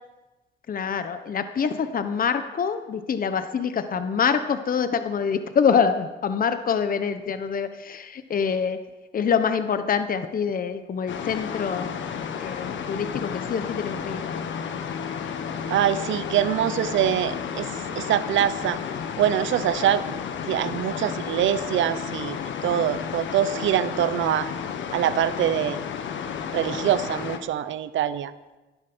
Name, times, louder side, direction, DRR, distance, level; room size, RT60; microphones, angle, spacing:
voice 1, 0.7-8.8 9.1-12.0 12.4-14.4 20.6-20.8, left 6 dB, 45° left, 9 dB, 1.1 m, -25 dB
sound 1, 11.1-27.4, left 7 dB, 70° left, 1.5 m, -32 dB
voice 2, 15.7-18.8 19.2-20.2 20.5-22.4 22.6-24.5 24.9-25.8 26.5-28.3, right 10 dB, 75° right, 14 dB, 0.9 m, -24 dB
14.0 x 11.5 x 6.2 m, 1.1 s
cardioid pair, 90°, 20 cm